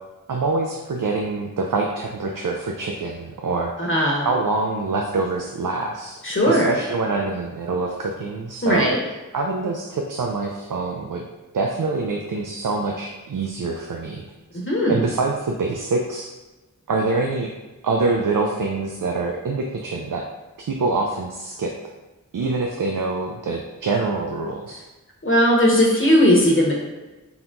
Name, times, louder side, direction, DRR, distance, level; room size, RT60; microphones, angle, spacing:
voice 1, 0.3-3.9 4.2-6.2 6.4-8.9 9.3-11.3 11.5-14.2 14.5-14.6 14.9-16.3 16.9-17.5 17.8-20.2 20.6-21.7 22.3-24.8, right 3 dB, 75° right, 1 dB, 0.5 m, -25 dB
voice 2, 3.8-4.3 6.2-6.7 8.6-9.0 14.5-15.0 25.2-26.7, equal, 40° left, -2 dB, 1.1 m, -18 dB
3.9 x 2.9 x 3.8 m, 1.1 s
wide cardioid pair, 55°, 33 cm